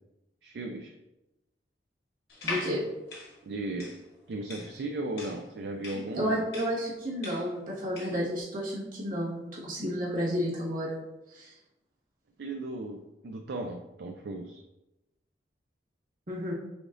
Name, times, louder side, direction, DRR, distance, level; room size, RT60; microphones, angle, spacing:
voice 1, 0.4-0.9 3.4-3.9 4.3-6.4 12.4-14.6, right 2 dB, 65° right, 3 dB, 0.4 m, -36 dB
sound 1, 2.3-8.3, left 2 dB, 65° left, 1.2 m, -41 dB
voice 2, 2.4-2.8 6.2-11.0 11.3-11.5 16.3-16.5, equal, 50° right, -5 dB, 1.5 m, -31 dB
5.1 x 3.6 x 2.5 m, 0.95 s
head